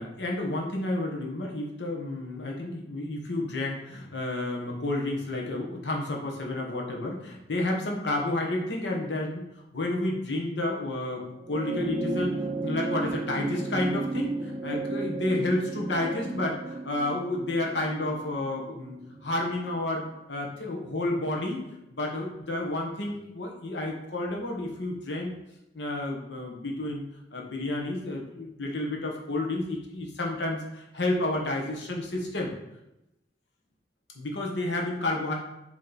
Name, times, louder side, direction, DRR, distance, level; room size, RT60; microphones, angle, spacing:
voice 1, 0.0-9.4 9.7-11.2 11.5-12.3 12.6-21.6 21.9-25.3 25.7-27.0 27.3-32.5 34.1-35.3, left 2 dB, 70° left, 0 dB, 1.3 m, -30 dB
sound 1, 11.4-20.1 21.3-21.4, right 2 dB, 20° right, 0.4 m, -34 dB
7.3 x 3.2 x 4.1 m, 0.88 s
head